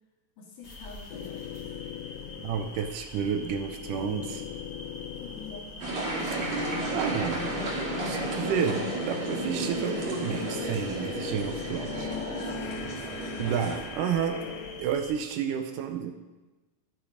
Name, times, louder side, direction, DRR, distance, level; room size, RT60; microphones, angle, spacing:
voice 1, 0.4-1.7 5.2-5.8 12.1-14.0 14.4-14.7, left 5 dB, 75° left, -2 dB, 3.7 m, -47 dB
sound 1, 0.6-15.1, left 1 dB, 45° left, 0.8 m, -45 dB
sound 2, 1.1-2.9 3.4-14.8, left 11 dB, 90° left, 2.2 m, -41 dB
voice 2, 2.4-4.4 6.9-7.5 8.0-12.1 13.4-14.4 14.8-16.1, right 7 dB, 80° right, 6 dB, 2.3 m, -30 dB
sound 3, 5.8-13.8, right 2 dB, 55° right, 3.6 m, -33 dB
11.0 x 10.5 x 5.0 m, 1.2 s
omnidirectional pair, 3.7 m